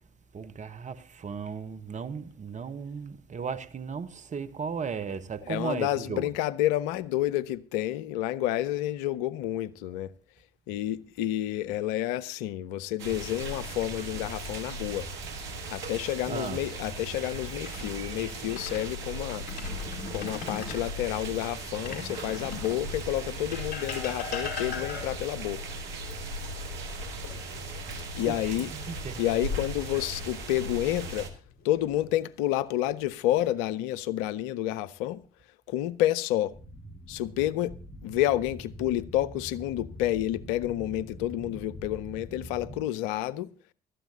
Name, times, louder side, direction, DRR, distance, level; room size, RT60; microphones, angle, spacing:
voice 1, 0.3-6.3 16.3-16.6 28.2-29.2, right 6 dB, 40° right, 1.1 m, -36 dB
voice 2, 5.5-10.1 10.7-15.1 15.7-19.4 20.1-25.6 28.2-28.7 29.2-31.3 31.6-35.2 35.7-36.5 37.1-37.7 38.0-43.5, left 13 dB, 75° left, 0.6 m, -29 dB
sound 1, 13.0-31.3, right 1 dB, 70° right, 1.8 m, -37 dB
sound 2, 17.6-18.9 19.3-20.9 21.7-22.9 23.5-25.3 27.2-27.9 28.3-28.5 31.5-32.1 32.8-33.4, left 5 dB, 60° left, 4.8 m, -40 dB
sound 3, 36.5-42.8, equal, 10° left, 4.5 m, -44 dB
18.0 x 13.0 x 2.8 m
hypercardioid pair, 50°, 19 cm